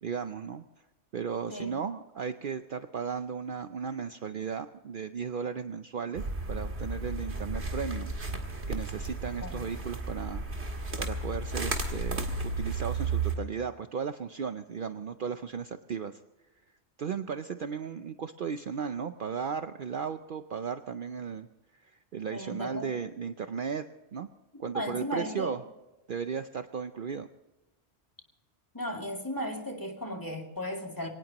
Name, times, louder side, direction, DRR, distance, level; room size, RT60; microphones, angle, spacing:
voice 1, 0.0-0.6 1.1-8.1 8.7-10.4 10.7-16.2 17.0-21.5 21.8-23.9 24.1-24.3 24.6-25.6 26.1-27.3, right 6 dB, 55° right, 9 dB, 0.7 m, -35 dB
sound 1, 6.1-13.3, right 3 dB, 75° right, 2.2 m, -33 dB
voice 2, 22.3-22.9 24.5-25.5 28.7-31.1, equal, 20° left, 1 dB, 2.5 m, -36 dB
24.0 x 18.5 x 3.0 m, 1.0 s
omnidirectional pair, 1.1 m